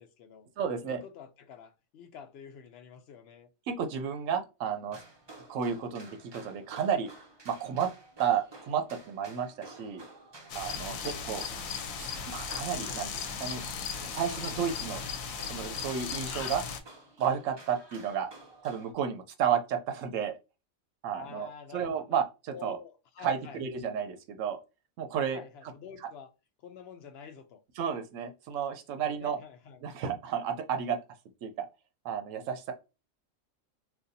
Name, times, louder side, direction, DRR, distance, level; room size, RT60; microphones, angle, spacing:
voice 1, 0.0-0.5 0.8-3.5 11.0-11.5 21.1-21.8 22.1-22.2 22.5-23.6 25.3-26.3 26.6-27.6 29.0-29.8, left 7 dB, 65° left, 0.7 m, -48 dB
voice 2, 0.6-1.0 3.7-5.0 5.5-7.1 7.5-7.9 8.2-10.0 10.5-11.4 12.0-13.6 14.0-15.0 15.4-16.6 17.2-18.3 18.6-20.4 21.0-22.8 23.2-24.6 25.0-25.7 27.8-29.4 29.8-31.0 31.4-31.7 32.0-32.7, right 7 dB, 75° right, 0.9 m, -32 dB
sound 1, 4.9-18.9, right 2 dB, 35° right, 0.4 m, -51 dB
sound 2, 10.5-16.8, left 6 dB, 80° left, 1.0 m, -37 dB
3.9 x 2.5 x 2.6 m
omnidirectional pair, 1.4 m